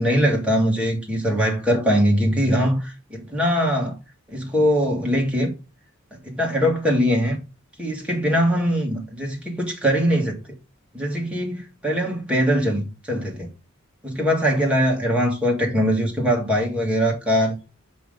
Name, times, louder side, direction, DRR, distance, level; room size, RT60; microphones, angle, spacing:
voice 1, 0.0-4.0 4.3-5.5 6.2-7.4 7.8-10.4 10.9-13.5 14.0-17.6, equal, 5° right, 1.9 m, -21 dB
6.1 x 5.0 x 3.7 m
head